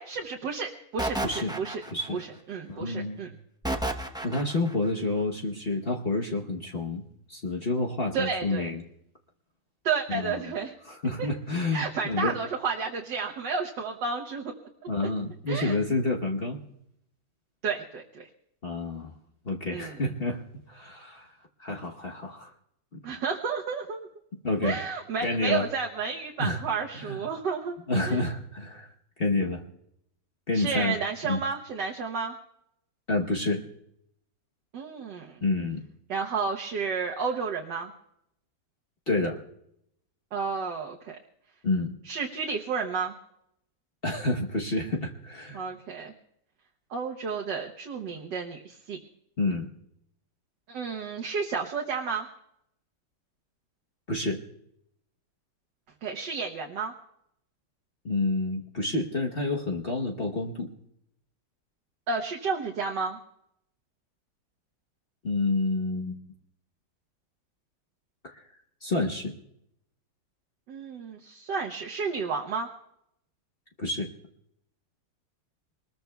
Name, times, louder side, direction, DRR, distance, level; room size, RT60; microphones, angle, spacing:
voice 1, 0.0-1.8 2.1-3.3 8.1-8.7 9.8-10.8 11.2-11.3 11.7-14.5 15.5-15.8 17.6-18.3 19.7-20.0 23.0-24.1 24.6-27.8 28.1-28.3 30.5-32.3 34.7-35.4 36.1-37.9 40.3-41.2 42.1-43.2 45.5-46.1 46.9-49.0 50.7-52.3 56.0-56.9 62.1-63.2 70.7-72.7, right 5 dB, 85° right, 0 dB, 1.7 m, -31 dB
sound 1, 1.0-2.2 3.6-4.7, right 1 dB, 5° right, 0.3 m, -31 dB
voice 2, 2.7-3.2 4.2-8.8 10.1-10.5 10.9-12.3 14.9-16.6 18.6-19.1 19.4-21.3 21.6-22.5 22.9-23.0 24.4-24.8 25.2-25.7 26.4-26.6 26.9-27.3 27.9-28.9 29.2-29.6 30.5-31.0 31.2-31.4 33.1-33.6 35.4-35.8 39.1-39.4 41.6-41.9 44.0-45.6 49.4-49.7 54.1-54.4 58.0-60.7 65.2-66.2 68.2-68.4 68.8-69.4 73.8-74.1, left 2 dB, 40° left, 0 dB, 1.1 m, -29 dB
25.0 x 20.5 x 2.3 m, 0.76 s
omnidirectional pair, 1.8 m